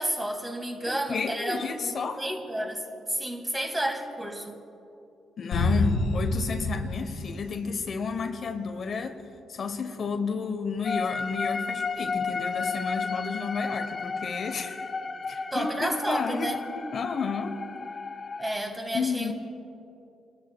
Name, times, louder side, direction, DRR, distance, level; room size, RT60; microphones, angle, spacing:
voice 1, 0.0-4.6 15.5-16.6 18.4-19.3, right 1 dB, 15° right, 4 dB, 1.6 m, -31 dB
voice 2, 0.9-2.2 5.4-9.2 9.5-14.9 15.3-17.6 18.9-19.3, left 5 dB, 50° left, 7 dB, 0.8 m, -32 dB
sound 1, 5.5-8.3, left 2 dB, 85° left, 1.5 m, -28 dB
sound 2, 10.8-18.5, left 5 dB, 30° left, 0.4 m, -33 dB
30.0 x 13.0 x 2.2 m, 2.8 s
cardioid pair, 90°, 0 cm